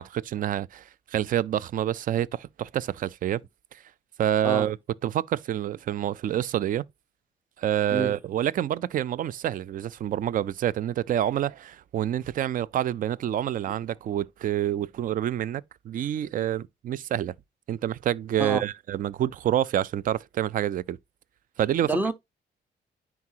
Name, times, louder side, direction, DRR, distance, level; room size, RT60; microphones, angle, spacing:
voice 1, 0.0-3.4 4.2-4.8 5.0-6.8 7.6-17.3 17.7-21.0 21.6-21.9, right 11 dB, 50° right, 0.4 m, -27 dB
voice 2, 4.4-4.7 7.9-8.1 18.4-18.6 21.8-22.1, right 2 dB, 10° right, 0.7 m, -27 dB
9.6 x 4.8 x 2.8 m
cardioid pair, 125°, 18 cm